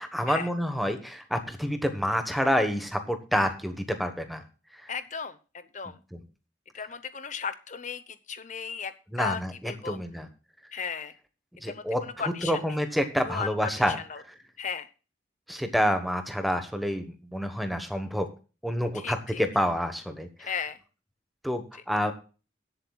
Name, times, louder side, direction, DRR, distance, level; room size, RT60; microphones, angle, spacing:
voice 1, 0.0-4.4 4.8-4.9 6.1-6.2 9.1-10.3 11.6-14.0 15.5-17.1 17.3-18.3 18.6-20.5 21.4-22.1, equal, ahead, 7 dB, 1.2 m, -28 dB
voice 2, 4.9-5.4 5.7-6.0 6.7-8.9 9.2-10.0 10.7-11.1 11.6-12.8 13.3-14.2 14.6-14.9 18.9-19.4 20.4-20.8, left 6 dB, 40° left, 12 dB, 0.8 m, -35 dB
22.0 x 7.8 x 2.3 m, 0.35 s
head